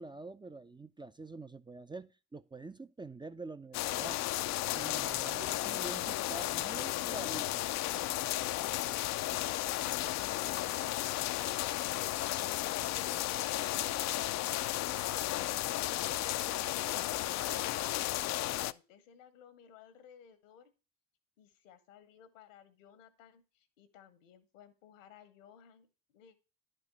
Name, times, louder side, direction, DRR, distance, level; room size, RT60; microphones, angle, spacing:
voice 1, 0.0-4.2 4.7-7.6, right 3 dB, 10° right, 0.5 m, -46 dB
sound 1, 3.7-18.7, left 15 dB, 45° left, 0.5 m, -34 dB
voice 2, 14.8-18.0 18.4-20.7 21.4-26.4, left 8 dB, 75° left, 1.3 m, -57 dB
11.0 x 4.5 x 4.6 m
hypercardioid pair, 55°, 39 cm